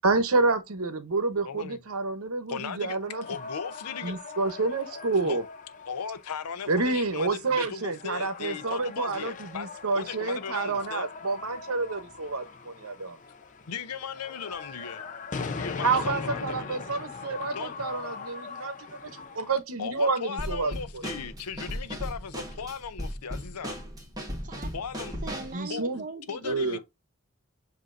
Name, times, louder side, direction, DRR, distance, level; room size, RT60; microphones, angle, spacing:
voice 1, 0.0-3.3 4.0-5.4 6.7-13.2 15.8-18.7 19.0-21.0 25.5-26.0 26.4-26.8, right 3 dB, 70° right, 0.9 m, -29 dB
voice 2, 1.4-1.8 2.5-4.1 5.2-5.4 5.9-11.1 12.9-13.0 13.7-15.0 15.5-16.8 17.5-17.7 19.8-23.8 24.7-25.2 25.7-25.8 26.3-26.8, left 6 dB, 90° left, 0.6 m, -37 dB
sound 1, 3.0-19.6, left 4 dB, 35° left, 0.6 m, -40 dB
Drum kit / Snare drum, 20.4-25.6, equal, 15° right, 1.5 m, -36 dB
voice 3, 25.2-26.8, right 3 dB, 35° right, 0.9 m, -40 dB
7.4 x 2.7 x 2.5 m
head